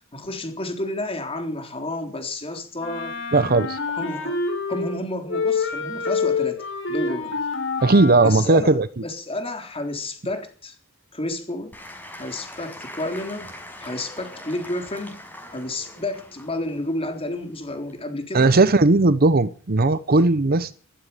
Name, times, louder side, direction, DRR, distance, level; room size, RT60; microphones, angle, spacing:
voice 1, 0.1-3.2 3.9-4.4 4.7-7.4 8.1-8.8 9.0-10.7 11.1-11.8 12.2-13.5 13.8-15.2 15.5-18.6, left 1 dB, 30° left, 3.6 m, -31 dB
Wind instrument woodwind instrument, 2.8-5.0 5.3-8.4, left 4 dB, 65° left, 5.8 m, -27 dB
voice 2, 3.3-3.8 7.8-9.0 18.3-20.7, right 3 dB, 50° right, 0.8 m, -17 dB
Applause / Crowd, 11.7-18.0, left 1 dB, 10° left, 5.7 m, -42 dB
15.0 x 13.5 x 6.9 m
head